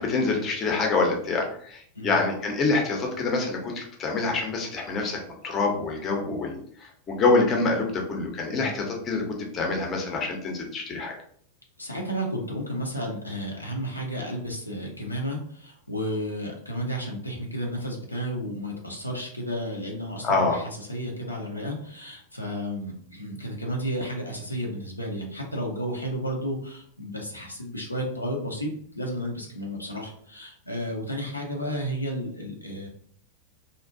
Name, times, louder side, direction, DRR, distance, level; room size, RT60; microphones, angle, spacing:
voice 1, 0.0-9.2 9.5-11.2 20.2-20.6, left 3 dB, 30° left, 1 dB, 0.5 m, -26 dB
voice 2, 11.8-32.9, equal, 85° left, 0 dB, 0.4 m, -32 dB
2.5 x 2.1 x 2.4 m, 0.62 s
figure-of-eight pair, 90°, 0 cm